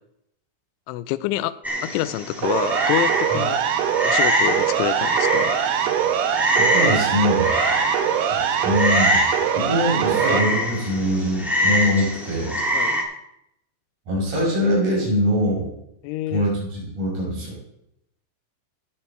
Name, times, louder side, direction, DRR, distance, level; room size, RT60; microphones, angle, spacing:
voice 1, 0.9-1.5 1.8-3.6 4.0-5.5 12.7-13.0 16.0-16.5, left 15 dB, 80° left, 14 dB, 2.9 m, -27 dB
Frog, 1.6-13.0, equal, ahead, 0.4 m, -25 dB
Siren, 2.4-10.4, right 9 dB, 75° right, 2.6 m, -22 dB
voice 2, 6.6-7.5 8.3-9.2 9.5-12.6 14.1-15.7 16.3-17.6, equal, 40° right, -5 dB, 7.0 m, -23 dB
15.5 x 9.1 x 4.5 m, 0.79 s
omnidirectional pair, 5.6 m